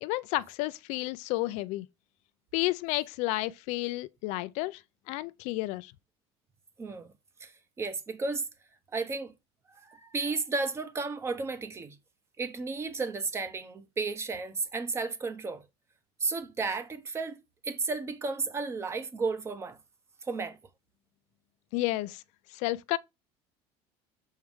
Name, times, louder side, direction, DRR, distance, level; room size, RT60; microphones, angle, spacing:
voice 1, 0.0-1.9 2.5-4.8 5.1-5.9 21.7-22.2 22.5-23.0, left 19 dB, 70° left, 0.4 m, -31 dB
voice 2, 7.4-8.5 8.9-9.3 9.7-12.0 12.4-15.6 16.2-19.8 20.2-20.6, right 4 dB, 20° right, 0.9 m, -33 dB
6.3 x 4.6 x 3.5 m
cardioid pair, 150°, 12 cm